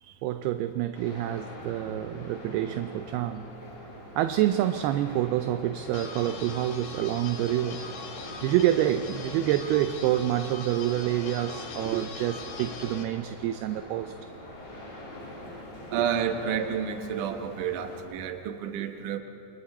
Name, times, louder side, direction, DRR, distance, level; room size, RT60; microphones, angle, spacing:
voice 1, 0.2-3.5 4.2-7.8 8.4-14.1, right 12 dB, 80° right, 9 dB, 2.4 m, -27 dB
sound 1, 0.9-18.0, left 1 dB, 90° left, 6.9 m, -44 dB
sound 2, 5.9-13.0, left 4 dB, 65° left, 3.3 m, -41 dB
voice 2, 15.9-19.2, right 8 dB, 65° right, 5 dB, 2.4 m, -30 dB
29.0 x 27.0 x 4.3 m, 2.6 s
omnidirectional pair, 5.0 m